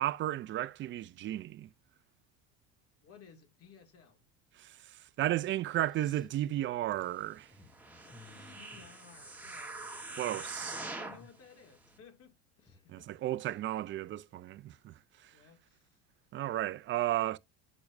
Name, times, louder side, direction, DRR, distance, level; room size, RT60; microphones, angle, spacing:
voice 1, 0.0-1.7 4.6-7.5 10.2-10.7 12.9-14.9 15.2-15.3 16.3-17.4, right 14 dB, 35° right, 0.5 m, -34 dB
voice 2, 3.0-4.2 8.0-10.1 10.5-13.1 13.4-13.6 15.3-16.0, left 6 dB, 45° left, 2.4 m, -58 dB
sound 1, 3.6-4.3 5.0-5.1 5.5-9.7 10.0-10.6 10.9-13.0, left 3 dB, 15° left, 0.9 m, -60 dB
sound 2, 7.7-11.3 11.9-12.0, right 2 dB, 5° right, 1.4 m, -43 dB
8.4 x 6.0 x 2.6 m
cardioid pair, 125°, 33 cm